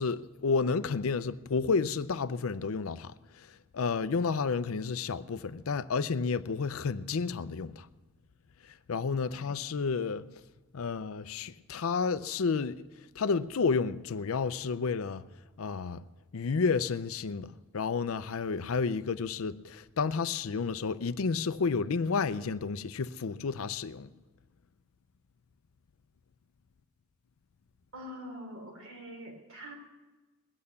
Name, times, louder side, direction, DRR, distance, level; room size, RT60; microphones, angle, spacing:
voice 1, 0.0-3.1 3.7-7.9 8.9-10.2 10.7-12.8 13.2-15.2 15.6-16.1 16.3-24.1, left 5 dB, 75° left, 0.5 m, -31 dB
voice 2, 27.9-29.7, equal, 70° right, 3.5 m, -44 dB
20.5 x 8.7 x 6.9 m
head